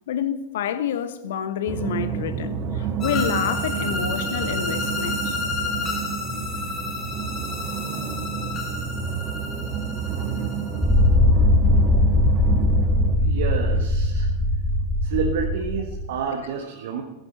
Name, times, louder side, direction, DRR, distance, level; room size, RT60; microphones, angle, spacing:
voice 1, 0.1-5.4, left 9 dB, 60° left, 1.1 m, -28 dB
sound 1, 1.7-13.2, right 6 dB, 35° right, 1.6 m, -29 dB
sound 2, 3.0-11.0, left 3 dB, 30° left, 3.6 m, -31 dB
sound 3, 10.8-16.1, left 1 dB, ahead, 3.8 m, -20 dB
voice 2, 13.0-14.5 15.0-17.0, right 6 dB, 55° right, 1.6 m, -30 dB
15.5 x 15.0 x 4.3 m
figure-of-eight pair, 90°, 0 cm